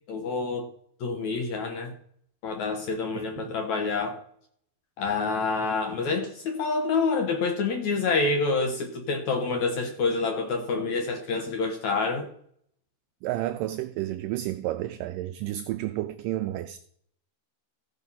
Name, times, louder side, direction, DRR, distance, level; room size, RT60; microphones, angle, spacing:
voice 1, 0.1-0.7 1.0-1.9 2.4-4.2 5.0-12.3, left 4 dB, 70° left, 1.9 m, -27 dB
voice 2, 3.1-3.5 13.2-16.8, right 14 dB, 90° right, 1.9 m, -31 dB
15.0 x 5.6 x 5.5 m
omnidirectional pair, 4.4 m